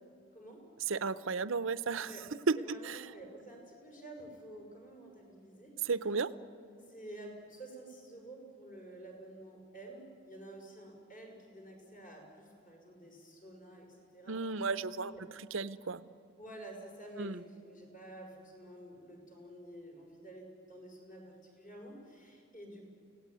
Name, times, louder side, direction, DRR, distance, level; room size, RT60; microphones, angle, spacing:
voice 1, 0.3-0.6 2.0-2.3 2.6-5.9 6.9-14.4 15.1-15.2 16.4-22.9, right 1 dB, 40° left, 0 dB, 5.8 m, -50 dB
voice 2, 0.9-2.1 2.5-3.0 5.8-6.3 14.3-15.1 15.5-16.0 17.2-17.4, right 4 dB, 65° right, 14 dB, 0.7 m, -33 dB
29.5 x 17.5 x 9.3 m, 2.5 s
head